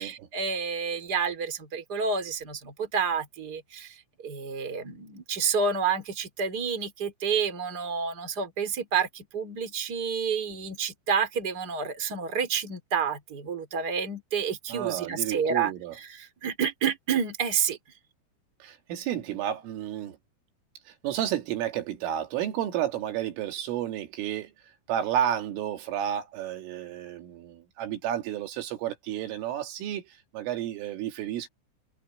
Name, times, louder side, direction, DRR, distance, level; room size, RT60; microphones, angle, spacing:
voice 1, 0.0-3.9 4.2-17.8, right 6 dB, 25° right, 3.3 m, -29 dB
voice 2, 14.7-15.9 18.6-20.2 20.9-24.5 24.9-31.5, right 11 dB, 85° right, 4.8 m, -31 dB
omnidirectional pair, 5.6 m